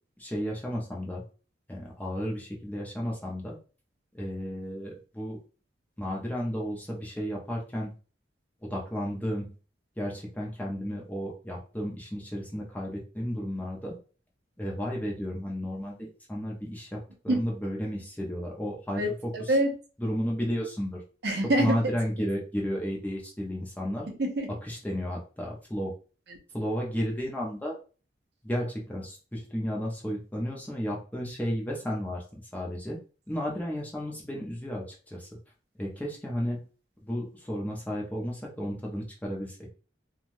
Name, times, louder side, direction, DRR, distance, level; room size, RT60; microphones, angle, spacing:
voice 1, 0.2-1.2 1.7-3.6 4.1-5.4 6.0-7.9 8.6-9.5 10.0-14.0 14.6-19.5 20.0-21.0 21.6-24.1 24.7-25.9 26.5-27.8 28.4-32.2 32.5-33.0 33.3-35.3 35.8-36.7 37.0-39.6, equal, 10° left, 0.6 m, -33 dB
voice 2, 18.9-19.7 21.2-21.8 24.2-24.5 26.3-26.4, right 1 dB, 60° right, 0.7 m, -26 dB
3.2 x 2.3 x 2.6 m
head